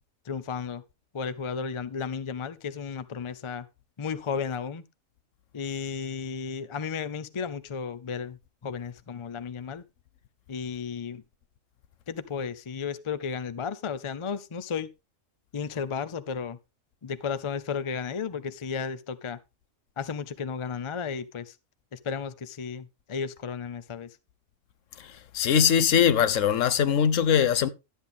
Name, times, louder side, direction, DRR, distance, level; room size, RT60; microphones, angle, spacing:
voice 1, 0.3-0.8 1.1-3.7 4.0-4.8 5.5-9.8 10.5-11.2 12.1-14.9 15.5-16.6 17.0-19.4 20.0-21.6 21.9-24.2, left 6 dB, 40° left, 0.4 m, -33 dB
voice 2, 25.3-27.7, left 8 dB, 70° left, 1.1 m, -21 dB
12.0 x 8.1 x 3.6 m
omnidirectional pair, 1.4 m